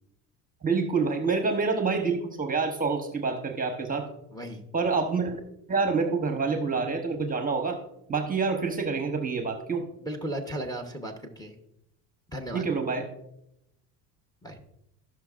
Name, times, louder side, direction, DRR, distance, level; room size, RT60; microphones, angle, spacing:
voice 1, 0.6-4.1 4.7-5.4 5.7-7.8 8.1-9.9 12.5-13.1, right 4 dB, 20° right, 6 dB, 1.0 m, -27 dB
voice 2, 4.3-4.6 10.0-11.6 12.3-12.7 14.4-14.6, right 1 dB, 10° left, 5 dB, 1.0 m, -35 dB
16.5 x 6.0 x 2.5 m, 0.81 s
supercardioid pair, 110°, 46 cm